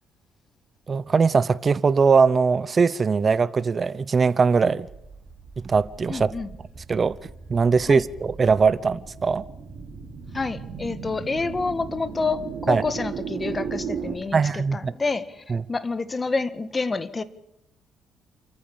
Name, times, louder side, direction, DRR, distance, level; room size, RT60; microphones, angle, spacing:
voice 1, 0.9-4.9 5.6-6.3 6.9-7.2 7.5-9.4 12.7-12.8 14.3-14.9 15.5-15.6, right 5 dB, 40° right, 0.8 m, -21 dB
sound 1, 4.8-14.2, right 6 dB, 65° right, 5.2 m, -37 dB
voice 2, 6.1-6.5 7.9-8.0 10.3-17.2, left 3 dB, 25° left, 1.6 m, -28 dB
28.5 x 14.5 x 7.3 m
cardioid pair, 90°, 0 cm